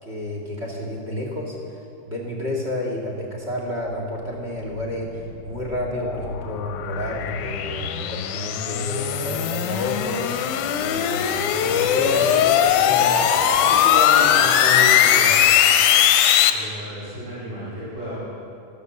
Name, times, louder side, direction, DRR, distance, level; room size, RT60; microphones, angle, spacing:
voice 1, 0.0-15.5, left 1 dB, 25° right, 0 dB, 1.8 m, -30 dB
sound 1, 5.2-16.5, left 9 dB, 80° left, 2.1 m, -19 dB
voice 2, 16.5-18.1, equal, 75° right, -12 dB, 6.0 m, -34 dB
14.0 x 12.0 x 6.9 m, 2.7 s
omnidirectional pair, 3.8 m